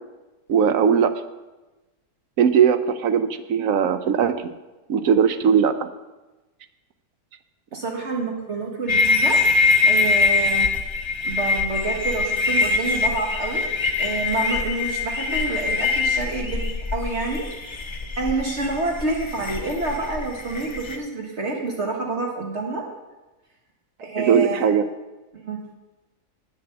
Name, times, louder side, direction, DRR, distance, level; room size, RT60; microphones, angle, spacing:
voice 1, 0.5-1.1 2.4-4.5 4.9-5.9 7.7-7.8 24.2-24.8, right 7 dB, 70° right, 11 dB, 1.0 m, -19 dB
voice 2, 7.7-9.4 9.8-10.7 11.2-13.7 14.0-17.4 18.2-22.8 24.0-24.7 25.3-25.6, right 3 dB, 50° right, -1 dB, 1.5 m, -28 dB
sound 1, 8.9-21.0, left 4 dB, 30° left, 0.6 m, -23 dB
8.9 x 7.2 x 7.8 m, 1.1 s
omnidirectional pair, 1.6 m